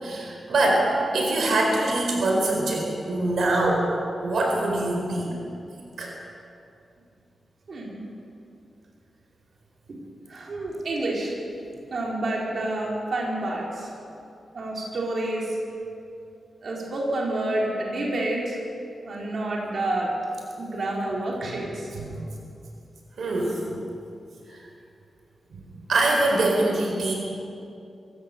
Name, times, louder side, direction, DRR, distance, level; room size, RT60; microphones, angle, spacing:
voice 1, 0.0-3.9 4.2-5.3 6.0-6.1 21.4-21.6 21.9-22.1 23.2-23.6 24.5-24.6 25.5-25.6 25.9-27.1, right 2 dB, 75° right, 0 dB, 4.4 m, -24 dB
voice 2, 7.7-8.0 9.9-10.0 10.3-11.3 11.9-13.9 14.5-15.6 16.6-18.6 19.0-20.1 20.6-21.9, right 2 dB, 55° right, -3 dB, 4.5 m, -28 dB
24.5 x 16.5 x 7.0 m, 2.6 s
wide cardioid pair, 145°, 0 cm